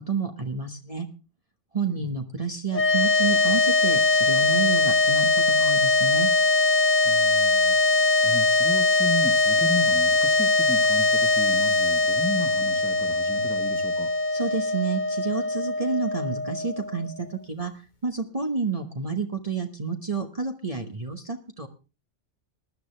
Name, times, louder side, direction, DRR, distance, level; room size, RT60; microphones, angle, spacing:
voice 1, 0.1-1.1 1.7-6.3 14.3-17.7 18.0-21.7, right 4 dB, 30° right, 4 dB, 1.3 m, -30 dB
sound 1, 2.7-17.1, left 2 dB, 45° left, 1.0 m, -22 dB
voice 2, 7.0-14.1, left 1 dB, 5° left, 6 dB, 1.6 m, -34 dB
19.5 x 12.0 x 3.3 m, 0.31 s
omnidirectional pair, 1.2 m